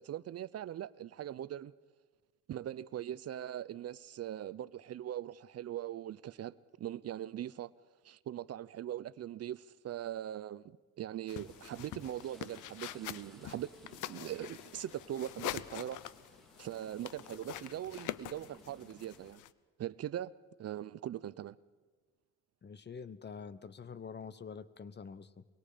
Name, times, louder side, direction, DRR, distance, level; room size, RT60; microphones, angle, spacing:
voice 1, 0.0-1.7 2.5-7.7 8.0-10.6 11.0-16.0 16.6-19.4 19.8-20.3 20.6-21.6, right 11 dB, 55° right, 0.6 m, -41 dB
sound 1, 11.3-19.5, left 13 dB, 85° left, 0.8 m, -45 dB
sound 2, 11.3-19.3, right 1 dB, ahead, 2.9 m, -61 dB
voice 2, 22.6-25.5, left 6 dB, 35° left, 1.0 m, -46 dB
23.5 x 23.5 x 5.1 m
cardioid pair, 90°, 30 cm